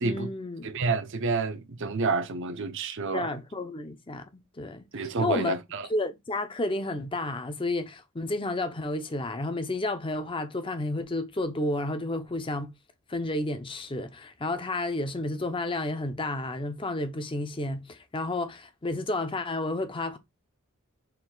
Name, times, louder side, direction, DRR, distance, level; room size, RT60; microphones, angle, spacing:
voice 1, 0.0-0.7 3.1-5.6 5.9-12.7 13.1-20.2, left 2 dB, 25° left, 0.6 m, -31 dB
voice 2, 0.6-3.3 4.9-5.9, right 3 dB, 55° right, 0.6 m, -29 dB
4.5 x 2.6 x 3.8 m
head